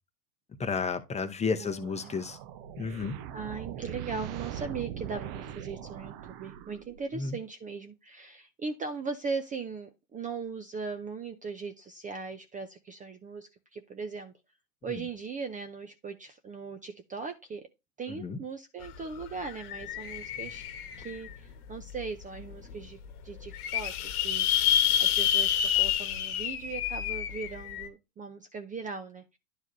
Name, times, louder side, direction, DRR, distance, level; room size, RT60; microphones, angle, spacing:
voice 1, 0.6-2.4 2.8-3.1 7.2-7.4 18.1-18.4, left 5 dB, 15° left, 0.8 m, -32 dB
voice 2, 1.6-2.1 3.3-14.3 14.8-17.7 18.0-20.6 21.0-29.4, right 4 dB, 15° right, 0.6 m, -39 dB
sound 1, 1.8-7.2, right 10 dB, 50° right, 0.9 m, -41 dB
sound 2, 18.8-18.9 19.2-21.3 21.9-22.0 22.4-22.5 22.6-22.7 23.3-27.9, left 10 dB, 65° left, 1.3 m, -28 dB
11.0 x 4.7 x 2.7 m
hypercardioid pair, 100°, 48 cm